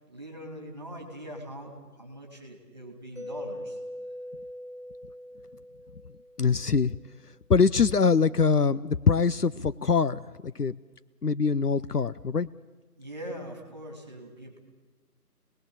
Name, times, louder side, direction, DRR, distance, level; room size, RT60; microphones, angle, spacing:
voice 1, 0.1-3.8 13.0-14.6, equal, 15° right, 2 dB, 2.8 m, -42 dB
Mallet percussion, 3.2-6.9, left 1 dB, 50° left, 4.3 m, -41 dB
voice 2, 6.4-7.0 7.5-10.7 11.2-12.5, left 5 dB, 70° left, 15 dB, 0.8 m, -23 dB
28.0 x 20.0 x 7.1 m, 1.3 s
figure-of-eight pair, 175°, 48 cm